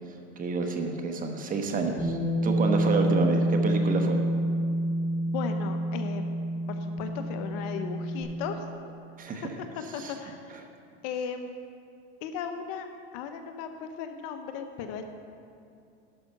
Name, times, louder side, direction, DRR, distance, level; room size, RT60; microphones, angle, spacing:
voice 1, 0.4-4.2 9.2-9.5 10.0-10.1, right 4 dB, 25° right, 4 dB, 1.1 m, -29 dB
Bass guitar, 2.0-8.2, right 1 dB, 20° left, 2.9 m, -27 dB
voice 2, 5.3-6.2 6.7-8.8 9.4-10.5 11.0-11.6 12.2-15.1, left 7 dB, 50° left, 6 dB, 1.0 m, -36 dB
11.5 x 5.8 x 6.6 m, 2.5 s
supercardioid pair, 125°, 32 cm